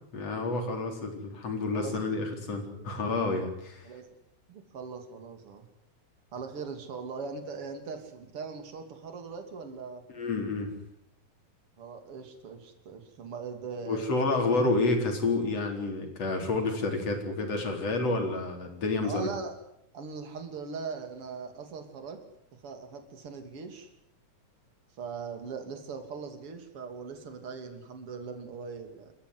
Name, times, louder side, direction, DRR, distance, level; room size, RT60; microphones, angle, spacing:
voice 1, 0.1-3.9 10.1-10.7 13.9-19.3, left 3 dB, 55° left, 4 dB, 5.1 m, -29 dB
voice 2, 4.5-5.7 6.3-10.0 11.8-14.1 14.5-14.7 19.0-19.6 19.9-22.2 22.6-23.9 25.0-29.1, right 5 dB, 50° right, 6 dB, 3.6 m, -40 dB
27.5 x 14.5 x 9.8 m, 0.75 s
omnidirectional pair, 3.5 m